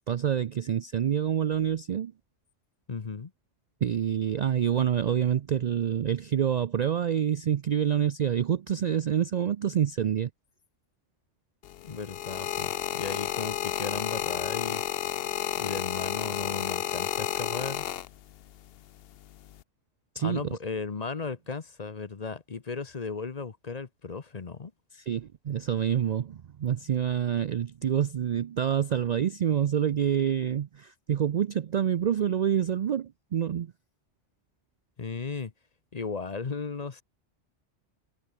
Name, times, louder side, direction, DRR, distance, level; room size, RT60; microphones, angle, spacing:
voice 1, 0.1-2.1 3.8-10.3 20.1-20.4 24.9-33.7, right 9 dB, 65° right, 0.4 m, -27 dB
voice 2, 2.9-3.3 11.8-14.8 15.6-17.9 20.2-24.7 35.0-35.5 35.9-37.0, left 4 dB, 35° left, 0.9 m, -36 dB
sound 1, 11.6-18.5 19.3-19.6, left 11 dB, 60° left, 0.7 m, -31 dB
omnidirectional pair, 1.3 m